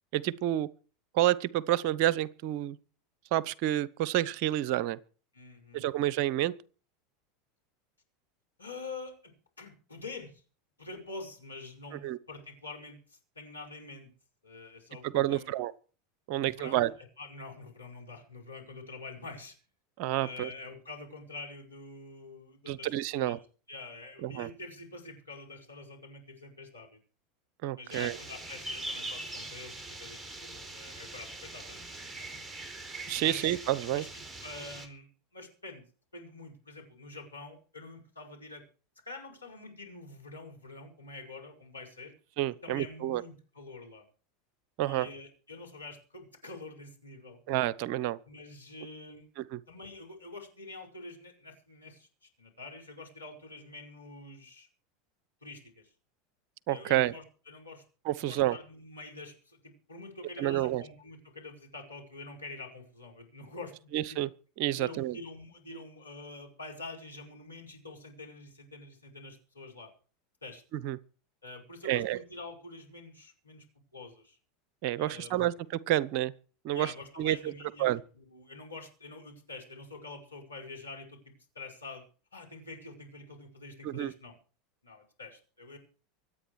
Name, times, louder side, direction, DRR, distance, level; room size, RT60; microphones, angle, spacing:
voice 1, 0.1-0.7 1.1-2.8 3.3-5.0 5.7-6.5 12.0-12.2 15.0-15.7 16.3-16.9 20.0-20.5 22.7-23.4 24.2-24.5 27.6-28.2 33.1-34.0 42.4-43.2 44.8-45.1 47.5-48.2 49.4-49.6 56.7-57.1 58.0-58.6 60.4-60.8 63.9-64.3 64.6-65.2 70.8-71.0 71.8-72.2 74.8-75.5 75.9-76.3 76.6-76.9 77.2-77.5 77.8-78.0 83.8-84.1, right 14 dB, 55° right, 0.9 m, -29 dB
voice 2, 5.3-5.9 8.6-10.4 10.8-14.1 14.4-15.5 16.3-16.9 17.2-19.5 20.2-23.4 23.7-27.0 27.7-32.5 33.2-33.6 33.9-35.8 36.1-38.6 39.0-42.1 42.6-44.0 44.8-47.4 48.3-49.2 49.7-54.7 55.4-55.9 56.7-57.8 58.2-64.2 64.7-69.9 70.4-70.6 71.4-73.6 73.9-74.4 75.0-75.3 76.7-77.9 78.1-82.0 82.3-84.3 84.8-85.8, left 3 dB, 90° left, 5.0 m, -46 dB
sound 1, 27.9-34.9, right 2 dB, 10° right, 4.2 m, -42 dB
24.5 x 9.1 x 4.8 m
figure-of-eight pair, 80°, 0 cm